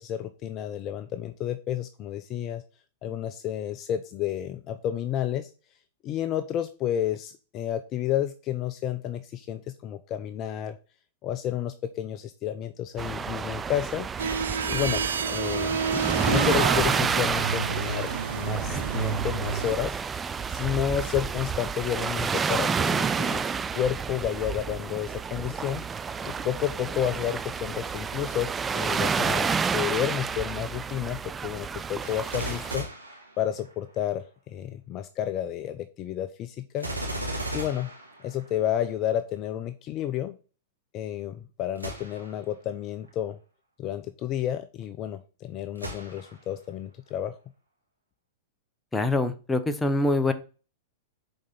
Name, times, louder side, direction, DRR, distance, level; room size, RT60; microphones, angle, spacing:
voice 1, 0.0-2.6 3.0-5.5 6.0-10.8 11.2-14.1 14.7-15.0 15.3-15.8 16.3-23.5 23.7-25.8 26.2-32.9 33.4-36.9 37.5-37.9 38.2-40.4 40.9-43.4 43.8-47.3, left 10 dB, 35° left, 10 dB, 0.5 m, -31 dB
sound 1, 13.0-32.8, right 6 dB, 20° right, 0.3 m, -30 dB
sound 2, 14.2-19.7, right 6 dB, 75° right, 0.5 m, -29 dB
Gunshot gunfire, 32.0-34.0 36.8-38.8 41.8-42.4 43.0-43.1 45.8-46.5 47.1-47.2, right 1 dB, 90° right, 2.1 m, -36 dB
voice 2, 48.9-50.3, left 2 dB, 10° left, 9 dB, 0.8 m, -24 dB
6.4 x 4.4 x 3.9 m, 0.35 s
figure-of-eight pair, 100°, 0 cm